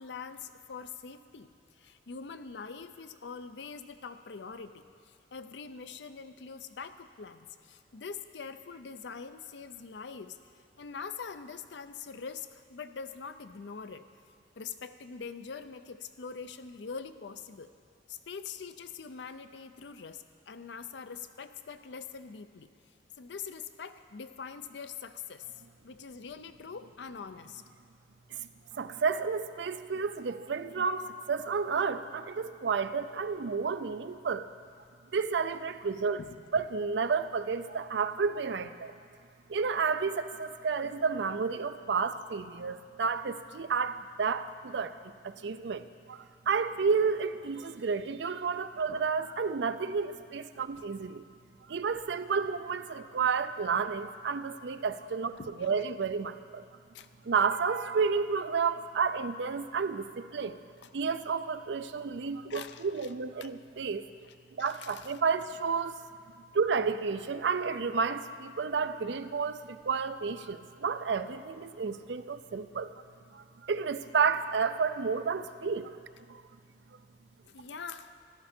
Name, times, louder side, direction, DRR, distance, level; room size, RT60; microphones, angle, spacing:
voice 1, 0.0-1.5 1.8-10.4 10.8-14.1 14.6-17.7 18.1-22.7 23.2-25.5 25.8-27.6 36.2-36.3 48.9-49.0 50.8-50.9 55.4-55.8 56.9-57.1 62.5-63.1 63.4-63.5 64.2-65.1 77.5-78.2, left 5 dB, 75° left, 10 dB, 0.5 m, -44 dB
voice 2, 28.7-34.5 35.1-36.2 36.5-38.9 39.5-44.9 45.2-51.2 51.7-55.3 55.6-56.7 57.3-60.6 60.9-64.1 64.6-66.0 66.5-72.9 73.3-76.0 76.3-76.4, right 5 dB, 70° right, 12 dB, 0.5 m, -31 dB
14.0 x 11.5 x 4.4 m, 2.2 s
head